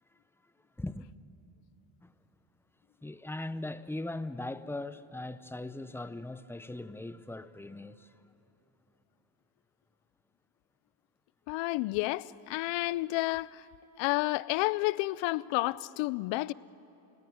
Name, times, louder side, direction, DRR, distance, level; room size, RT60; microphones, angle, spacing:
voice 1, 0.8-1.1 2.0-2.1 3.0-8.1, left 2 dB, 5° left, 0.7 m, -39 dB
voice 2, 11.5-13.6 14.0-16.5, left 20 dB, 85° left, 0.6 m, -30 dB
29.0 x 16.5 x 9.4 m
cardioid pair, 95°, 43 cm